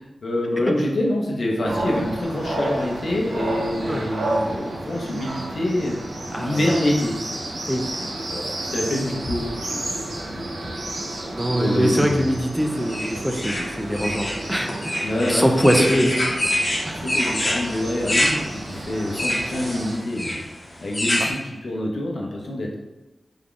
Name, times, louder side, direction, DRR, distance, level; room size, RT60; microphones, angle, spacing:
voice 1, 0.2-6.0 6.4-7.1 8.3-9.5 9.7-10.8 11.6-12.2 15.0-15.5 15.7-15.9 17.0-20.4 20.8-22.8, left 1 dB, 75° left, -1 dB, 0.7 m, -26 dB
sound 1, 1.6-20.0, right 1 dB, 75° right, 0.6 m, -31 dB
voice 2, 6.3-6.7 7.7-7.8 11.3-16.3 16.8-17.1 21.1-21.3, equal, 5° right, 3 dB, 0.3 m, -23 dB
sound 2, 12.9-21.3, left 1 dB, 30° left, 0.7 m, -26 dB
3.5 x 2.3 x 3.7 m, 1.1 s
wide cardioid pair, 115°, 0 cm